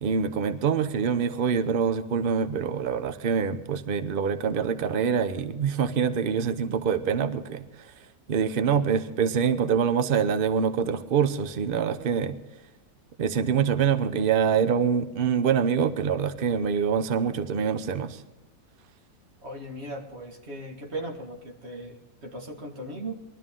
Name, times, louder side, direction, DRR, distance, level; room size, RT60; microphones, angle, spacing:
voice 1, 0.0-7.9 8.3-12.4 13.2-18.2, right 7 dB, 85° right, 12 dB, 0.4 m, -25 dB
voice 2, 19.4-23.2, right 1 dB, 35° right, 2 dB, 2.0 m, -38 dB
21.0 x 12.5 x 3.7 m, 1.0 s
omnidirectional pair, 1.9 m